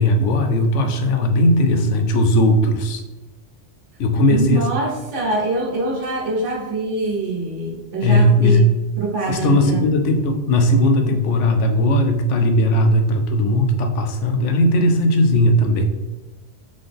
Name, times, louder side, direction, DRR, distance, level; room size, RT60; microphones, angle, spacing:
voice 1, 0.0-3.0 4.0-4.7 8.0-8.7 9.3-15.8, left 1 dB, 85° left, 5 dB, 0.9 m, -17 dB
voice 2, 4.3-8.7 9.0-9.8, right 2 dB, 80° right, -3 dB, 1.2 m, -24 dB
3.9 x 3.7 x 3.4 m, 1.1 s
omnidirectional pair, 1.2 m